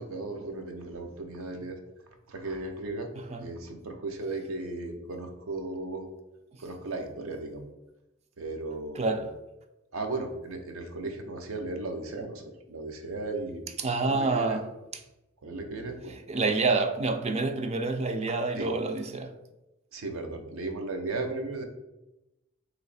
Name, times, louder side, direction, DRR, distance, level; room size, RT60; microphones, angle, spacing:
voice 1, 0.0-1.8 2.3-3.1 3.4-6.1 6.6-7.6 8.4-9.2 9.9-12.4 12.7-13.6 14.0-14.6 15.4-16.2 18.6-18.7 19.9-21.6, right 2 dB, 85° right, 0.6 m, -36 dB
voice 2, 3.2-3.5 8.9-9.3 13.8-14.7 16.3-19.4, right 3 dB, 30° right, 0.3 m, -28 dB
3.1 x 2.8 x 4.0 m
head